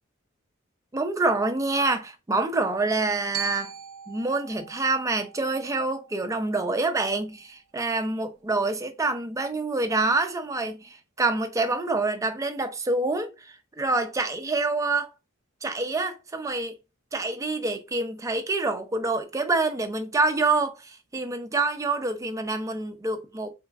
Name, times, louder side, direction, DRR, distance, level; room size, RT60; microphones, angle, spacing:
voice 1, 0.9-3.7 4.1-15.1 15.6-16.7 17.1-23.5, right 3 dB, 15° right, 0.4 m, -27 dB
Glockenspiel, 3.3-7.5, right 10 dB, 85° right, 0.4 m, -41 dB
3.6 x 3.0 x 2.3 m
head